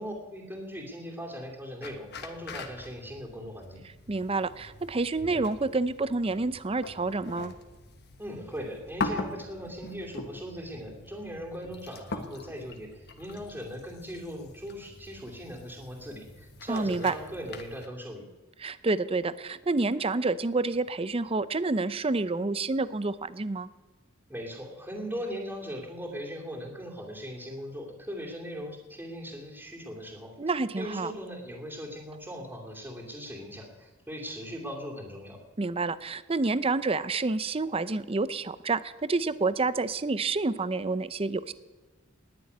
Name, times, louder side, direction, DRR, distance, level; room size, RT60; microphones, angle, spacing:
voice 1, 0.0-3.8 8.2-18.2 24.3-35.4, equal, 10° right, -1 dB, 2.7 m, -39 dB
sound 1, 1.8-17.9, left 3 dB, 55° left, 1.4 m, -42 dB
voice 2, 4.1-7.5 16.7-17.1 18.6-23.7 30.4-31.1 35.6-41.5, right 3 dB, 30° right, 15 dB, 0.6 m, -28 dB
19.5 x 7.0 x 9.5 m, 1.2 s
head